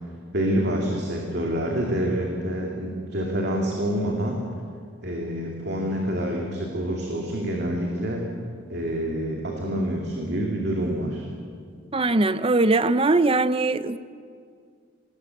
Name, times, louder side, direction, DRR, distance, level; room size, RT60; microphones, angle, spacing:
voice 1, 0.3-4.4 5.0-8.3 8.7-11.2, equal, 55° right, 0 dB, 2.7 m, -27 dB
voice 2, 11.9-14.0, right 2 dB, 25° right, 14 dB, 0.7 m, -21 dB
27.0 x 20.0 x 7.9 m, 2.2 s
head